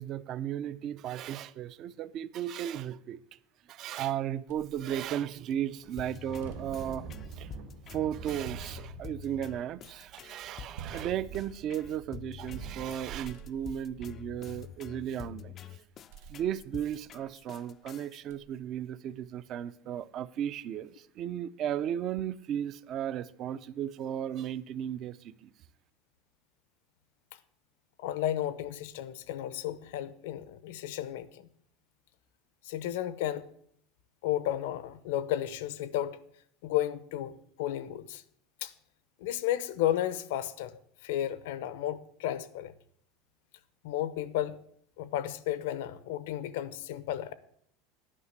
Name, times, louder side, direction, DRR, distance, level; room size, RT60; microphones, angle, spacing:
voice 1, 0.0-3.2 3.7-7.1 7.3-7.5 7.9-15.8 16.3-25.5, right 10 dB, 40° right, 0.4 m, -35 dB
sound 1, 4.5-5.7 6.2-12.8 13.1-15.4 16.1-17.6 18.3-18.8, right 7 dB, 85° right, 0.7 m, -50 dB
Thunder, 5.7-15.1, right 6 dB, 65° right, 2.1 m, -47 dB
sound 2, 6.0-18.2, left 9 dB, 30° left, 0.3 m, -47 dB
voice 2, 28.0-31.4 32.6-33.5 34.2-36.2 36.6-38.2 38.6-38.7 39.2-40.7 41.0-42.7 43.8-44.6 45.0-47.3, left 12 dB, 80° left, 0.7 m, -33 dB
9.9 x 5.7 x 8.0 m
supercardioid pair, 155°, 0 cm